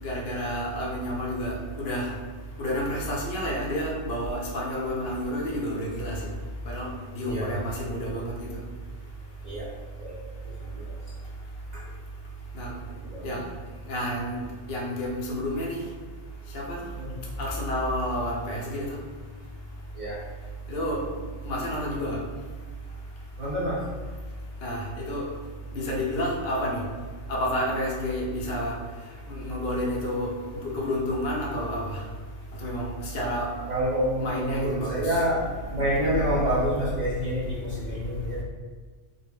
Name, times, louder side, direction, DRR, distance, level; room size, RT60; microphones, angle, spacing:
voice 1, 0.0-2.1 2.6-6.2 6.7-8.5 12.5-12.7 13.2-13.4 13.9-14.4 14.7-15.8 16.5-16.8 17.4-19.0 20.7-21.0 21.5-22.2 24.6-25.3 25.7-26.8 27.3-28.8 29.3-32.0 32.6-33.5 34.2-35.2, equal, 60° left, -2 dB, 0.7 m, -30 dB
voice 2, 10.4-10.9 11.7-11.8 13.0-13.3 16.9-17.2 19.9-20.2 23.4-23.8 33.7-38.4, equal, 65° right, -8 dB, 0.4 m, -28 dB
2.1 x 2.1 x 3.4 m, 1.4 s
omnidirectional pair, 1.4 m